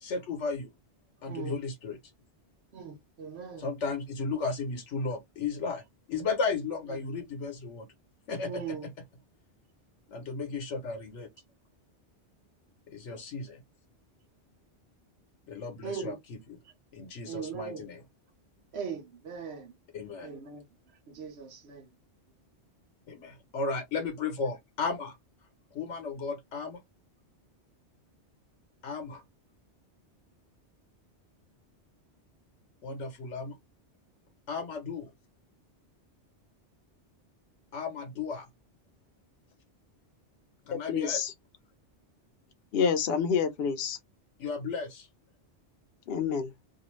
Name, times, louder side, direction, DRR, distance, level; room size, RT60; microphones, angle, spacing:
voice 1, 0.0-0.7 1.2-2.0 3.6-5.8 6.1-7.9 8.3-8.9 10.1-11.3 12.9-13.6 15.5-16.6 16.9-18.0 19.9-20.3 23.1-25.2 25.7-26.8 28.8-29.2 32.8-33.6 34.5-35.1 37.7-38.5 40.6-41.2 44.4-45.1, left 4 dB, 90° left, 1.1 m, -34 dB
voice 2, 2.7-3.6 8.4-8.9 15.8-16.2 17.3-17.8 18.7-19.7 20.2-20.7 21.1-21.9, right 6 dB, 70° right, 1.0 m, -39 dB
voice 3, 40.7-41.3 42.7-44.0 46.1-46.5, left 6 dB, 65° left, 0.8 m, -28 dB
2.5 x 2.4 x 3.0 m
omnidirectional pair, 1.2 m